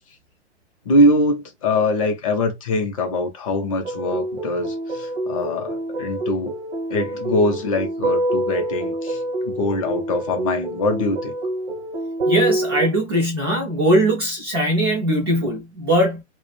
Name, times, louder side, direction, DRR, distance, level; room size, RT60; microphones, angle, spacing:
voice 1, 0.9-6.5 6.9-9.2 9.4-11.3, left 1 dB, 30° left, 0.5 m, -22 dB
sound 1, 3.8-12.9, right 1 dB, 55° right, 0.8 m, -26 dB
voice 2, 12.3-16.2, right 1 dB, 25° right, 0.4 m, -20 dB
2.3 x 2.0 x 3.1 m
hypercardioid pair, 145°, 35 cm